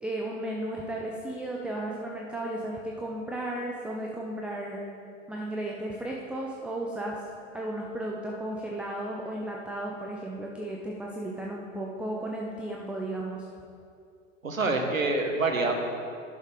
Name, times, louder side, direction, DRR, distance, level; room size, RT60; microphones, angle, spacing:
voice 1, 0.0-4.8 5.3-7.2 7.5-13.5, right 1 dB, 5° right, -2 dB, 0.5 m, -34 dB
voice 2, 14.4-15.7, right 3 dB, 85° right, 3 dB, 1.2 m, -26 dB
11.0 x 6.3 x 3.7 m, 2.4 s
figure-of-eight pair, 90°, 40 cm